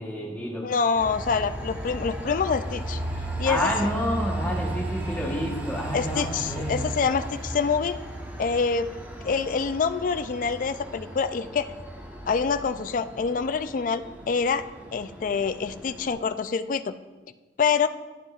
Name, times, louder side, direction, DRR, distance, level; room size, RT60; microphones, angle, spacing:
voice 1, 0.0-0.7 3.4-6.9, equal, 10° left, -2 dB, 1.1 m, -29 dB
voice 2, 0.6-3.0 3.4-3.7 5.9-8.0 8.4-8.9 9.2-11.7 12.3-14.6 14.9-16.9 17.6-17.9, left 5 dB, 50° left, 12 dB, 0.3 m, -26 dB
Train, 0.9-16.1, right 1 dB, 10° right, 0.9 m, -35 dB
10.5 x 9.5 x 2.4 m, 1.3 s
head